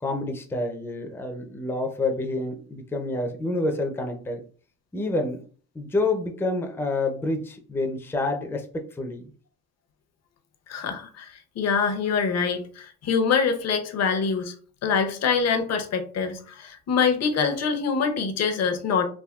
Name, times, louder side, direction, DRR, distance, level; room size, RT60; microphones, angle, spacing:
voice 1, 0.0-4.4 4.9-5.4 5.7-8.7 8.9-9.2, left 2 dB, 10° left, 4 dB, 0.5 m, -28 dB
voice 2, 10.7-14.5 14.8-19.0, left 5 dB, 55° left, 6 dB, 0.7 m, -25 dB
3.5 x 2.3 x 2.3 m, 0.43 s
cardioid pair, 90°, 30 cm